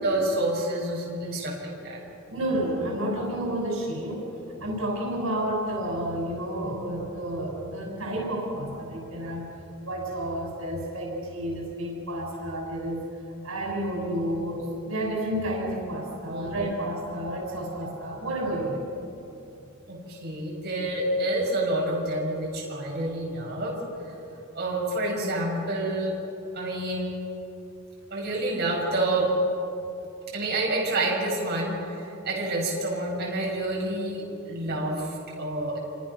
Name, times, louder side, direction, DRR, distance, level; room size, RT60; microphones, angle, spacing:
voice 1, 0.0-2.0 2.4-2.5 16.2-16.7 19.9-23.8 24.5-26.2 26.5-27.1 28.1-29.3 30.3-35.8, right 1 dB, 50° right, -3 dB, 6.6 m, -28 dB
voice 2, 2.3-4.2 4.6-9.5 9.8-13.0 13.4-18.8, right 1 dB, 85° right, -1 dB, 6.6 m, -30 dB
28.0 x 25.5 x 6.2 m, 2.7 s
head